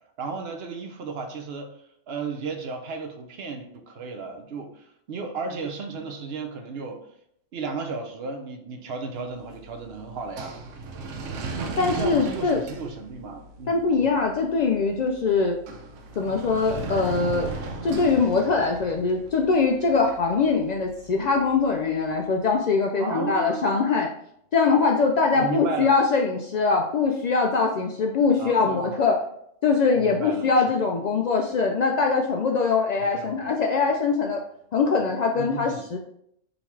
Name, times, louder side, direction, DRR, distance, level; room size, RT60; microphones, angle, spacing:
voice 1, 0.2-1.7 2.1-7.0 7.5-10.6 11.3-11.5 11.8-14.2 23.0-23.7 25.3-25.9 28.4-29.1 29.9-30.6 33.0-33.5 35.3-35.9, right 4 dB, 60° right, 5 dB, 0.9 m, -34 dB
sound 1, 9.2-22.3, right 3 dB, 85° right, 1.0 m, -38 dB
voice 2, 11.8-12.6 13.7-15.6 16.2-17.5 17.8-24.1 24.5-29.1 29.6-34.4 34.7-36.0, left 4 dB, 70° left, 1 dB, 0.4 m, -22 dB
3.9 x 2.9 x 4.5 m, 0.70 s
omnidirectional pair, 1.2 m